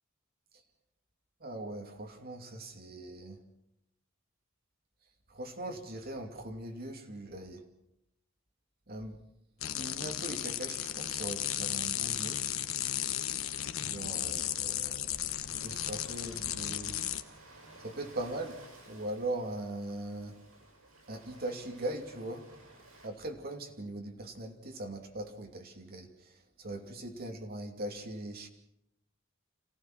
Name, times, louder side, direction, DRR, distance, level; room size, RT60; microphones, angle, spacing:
voice 1, 1.4-3.4 5.3-7.7 8.9-9.2 9.7-12.4 13.8-17.0 17.8-20.4 21.1-22.5 23.0-28.5, right 1 dB, 50° right, 3 dB, 2.8 m, -40 dB
sound 1, 9.6-17.2, left 11 dB, 85° left, 1.1 m, -35 dB
Ocean, 12.1-23.1, right 2 dB, 90° right, 7.1 m, -56 dB
27.0 x 17.0 x 6.2 m, 0.80 s
head